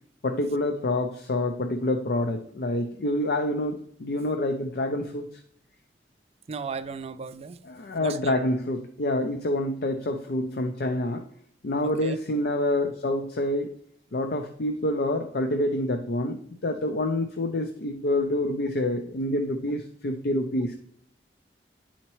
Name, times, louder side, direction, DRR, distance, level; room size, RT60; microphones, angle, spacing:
voice 1, 0.2-5.3 7.7-11.2 11.6-13.7 14.1-20.8, left 1 dB, 60° left, 0.6 m, -27 dB
voice 2, 6.5-7.6 8.0-8.3 11.8-12.2, right 5 dB, 35° right, 0.4 m, -36 dB
10.0 x 4.3 x 3.0 m
head